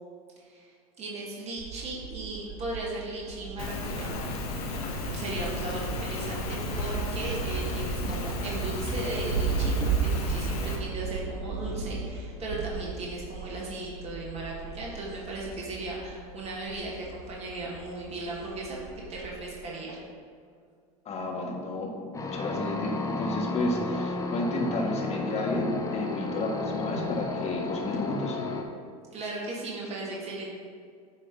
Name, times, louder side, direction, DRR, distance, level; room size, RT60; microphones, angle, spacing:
voice 1, 0.4-4.2 5.1-20.0 29.1-30.5, right 2 dB, 35° right, -4 dB, 1.8 m, -37 dB
Thunder, 1.6-19.6, right 5 dB, 65° right, 0.9 m, -35 dB
Rain, 3.6-10.8, left 3 dB, 75° left, 1.1 m, -34 dB
voice 2, 21.0-28.4, left 2 dB, 35° left, 0 dB, 1.6 m, -31 dB
sound 1, 22.1-28.6, left 3 dB, 15° left, 0.9 m, -33 dB
9.0 x 3.3 x 5.2 m, 2.2 s
hypercardioid pair, 90°, 19 cm